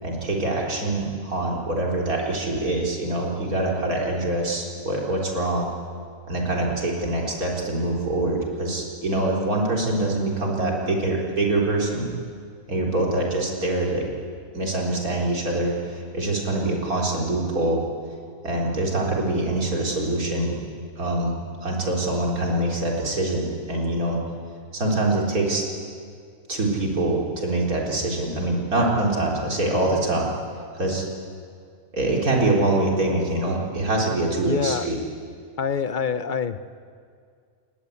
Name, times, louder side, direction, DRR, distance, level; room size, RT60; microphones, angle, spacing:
voice 1, 0.0-5.7 6.3-12.1 12.7-14.1 14.5-17.8 18.4-20.6 21.0-24.2 24.7-25.7 26.5-30.3 30.7-31.1 31.9-35.0, right 2 dB, 85° right, -2 dB, 4.4 m, -24 dB
voice 2, 34.4-34.9 35.6-36.6, left 6 dB, 40° left, 12 dB, 0.9 m, -26 dB
28.5 x 20.5 x 8.5 m, 2.2 s
omnidirectional pair, 1.5 m